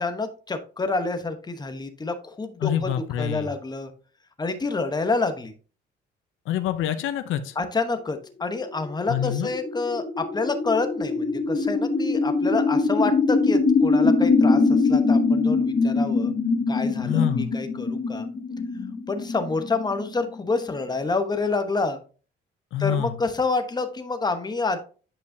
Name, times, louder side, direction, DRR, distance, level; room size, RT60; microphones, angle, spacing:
voice 1, 0.0-2.9 3.2-3.9 4.4-5.5 7.6-16.3 16.7-18.3 19.1-22.0 22.8-24.8, left 3 dB, 20° left, 8 dB, 1.0 m, -28 dB
voice 2, 2.6-3.5 6.5-7.6 9.1-9.5 17.0-17.5 22.7-23.2, left 10 dB, 85° left, 10 dB, 0.6 m, -26 dB
sound 1, 8.6-20.7, left 3 dB, 40° left, 2.7 m, -23 dB
8.7 x 5.3 x 2.7 m, 0.38 s
cardioid pair, 90°, 20 cm